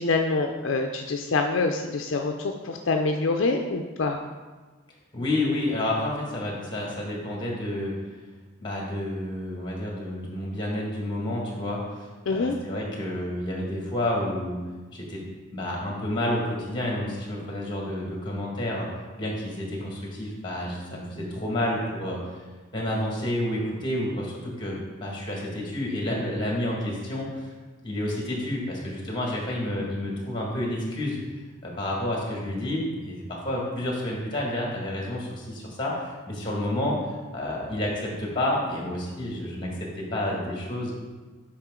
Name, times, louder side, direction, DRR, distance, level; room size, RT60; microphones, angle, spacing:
voice 1, 0.0-4.2 12.3-12.6, left 3 dB, 65° left, 3 dB, 0.5 m, -26 dB
voice 2, 5.1-8.0 8.6-14.6 14.9-15.2 15.5-18.9 19.2-22.2 22.7-27.5 27.8-31.2 31.6-37.0 37.3-40.9, left 1 dB, 20° left, -2 dB, 1.7 m, -30 dB
8.8 x 4.9 x 3.7 m, 1.3 s
head